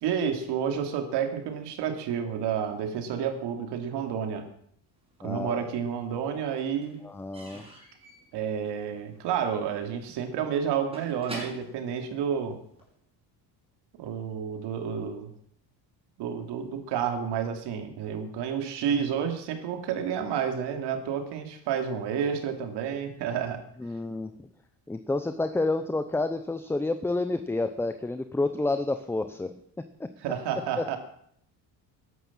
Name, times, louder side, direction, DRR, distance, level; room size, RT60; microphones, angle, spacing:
voice 1, 0.0-4.5 5.2-7.0 8.3-12.6 14.0-15.3 16.2-23.6 30.2-31.0, right 8 dB, 75° right, 6 dB, 2.8 m, -30 dB
Slam / Squeak / Wood, 5.1-5.9 6.2-12.9, right 1 dB, 15° right, 6.0 m, -46 dB
voice 2, 5.2-5.7 7.0-7.7 23.8-24.3 24.9-29.5 30.0-30.1 30.8-30.9, left 2 dB, 5° left, 10 dB, 0.6 m, -29 dB
13.5 x 11.0 x 7.4 m, 0.70 s
cardioid pair, 140°, 41 cm